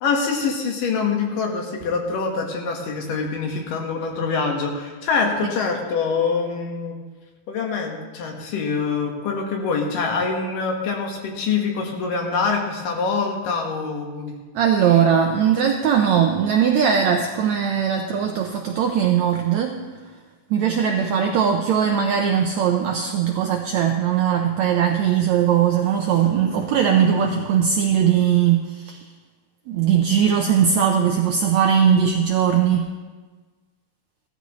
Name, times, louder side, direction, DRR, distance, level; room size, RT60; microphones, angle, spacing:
voice 1, 0.0-7.0 7.5-14.3, left 5 dB, 70° left, 1 dB, 3.1 m, -25 dB
voice 2, 14.5-19.8 20.5-29.0 29.7-32.9, right 8 dB, 85° right, 3 dB, 1.6 m, -19 dB
16.5 x 13.0 x 3.1 m, 1.3 s
omnidirectional pair, 4.1 m